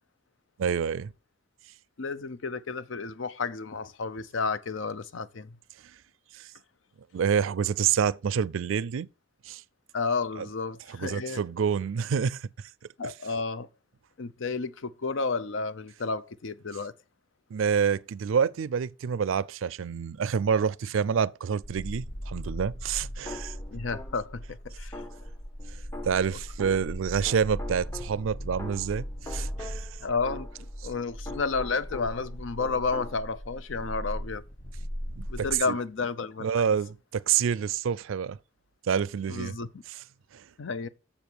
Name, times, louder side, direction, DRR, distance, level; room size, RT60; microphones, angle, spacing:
voice 1, 0.6-1.1 6.3-6.5 7.1-9.1 9.5-9.6 10.4-10.5 10.9-12.5 13.0-13.1 17.5-23.5 26.0-29.9 35.2-35.3 35.7-35.8 36.4-38.4 38.9-39.5 40.3-40.4, right 7 dB, 80° right, 0.4 m, -27 dB
voice 2, 2.0-5.6 9.9-11.4 13.0-13.7 14.2-16.9 23.7-25.0 26.3-26.4 30.0-34.4 35.3-36.7 39.3-39.8 40.6-40.9, left 4 dB, 75° left, 0.6 m, -32 dB
sound 1, 21.6-35.6, equal, 40° left, 1.0 m, -38 dB
sound 2, 23.3-24.4 24.9-27.0 27.3-32.3 32.6-33.2, left 1 dB, 15° left, 0.7 m, -44 dB
7.0 x 7.0 x 4.5 m
head